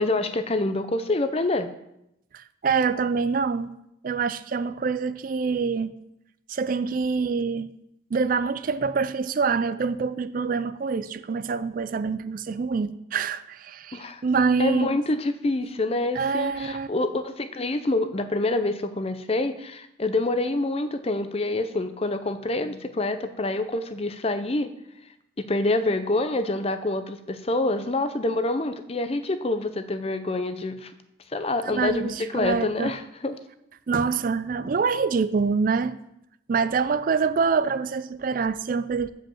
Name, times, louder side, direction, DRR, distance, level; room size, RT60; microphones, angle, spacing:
voice 1, 0.0-1.7 13.9-14.2 14.6-24.7 25.4-30.9 31.3-33.4, left 2 dB, 30° left, 0.6 m, -26 dB
voice 2, 2.3-3.7 4.0-5.9 6.5-7.7 8.1-15.0 16.1-16.9 31.7-32.9 33.9-36.0 36.5-39.1, right 5 dB, 45° right, 0.4 m, -25 dB
7.6 x 5.3 x 7.1 m
head